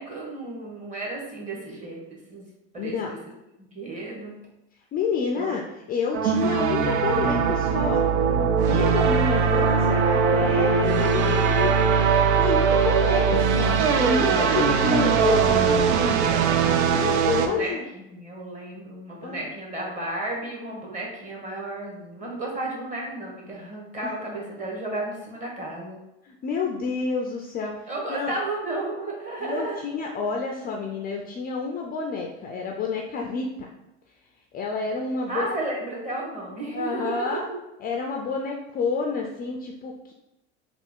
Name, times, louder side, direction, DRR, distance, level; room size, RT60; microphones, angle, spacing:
voice 1, 0.0-2.5 2.7-3.2 3.7-4.3 5.4-5.5 14.4-14.8 16.3-26.0 27.9-29.8 35.3-37.5, right 2 dB, 20° right, -2 dB, 1.3 m, -33 dB
voice 2, 2.8-3.1 4.9-8.1 8.5-11.9 12.3-15.9 16.6-17.8 19.2-19.4 24.0-24.1 26.2-28.3 29.4-33.7 34.5-35.5 36.7-37.4 37.8-40.1, left 5 dB, 30° left, 1 dB, 0.4 m, -29 dB
sound 1, 6.1-17.5, right 6 dB, 90° right, 0.5 m, -21 dB
3.3 x 2.4 x 3.6 m, 0.93 s
supercardioid pair, 105°, 33 cm